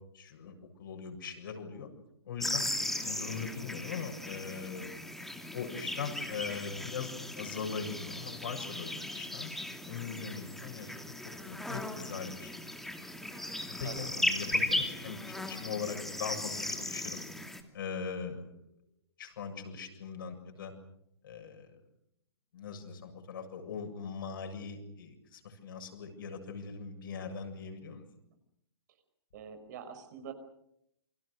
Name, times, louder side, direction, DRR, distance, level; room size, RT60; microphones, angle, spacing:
voice 1, 0.1-1.9 2.2-4.9 5.5-9.5 9.9-10.9 11.4-12.5 13.7-17.2 17.7-18.5 19.2-20.7 21.2-21.8 22.5-28.1, left 6 dB, 55° left, 4 dB, 7.4 m, -40 dB
sound 1, 2.4-17.6, left 1 dB, ahead, 2.5 m, -37 dB
voice 2, 29.3-30.3, right 7 dB, 45° right, 8 dB, 5.1 m, -44 dB
29.0 x 25.5 x 6.5 m, 0.78 s
figure-of-eight pair, 125°, 14 cm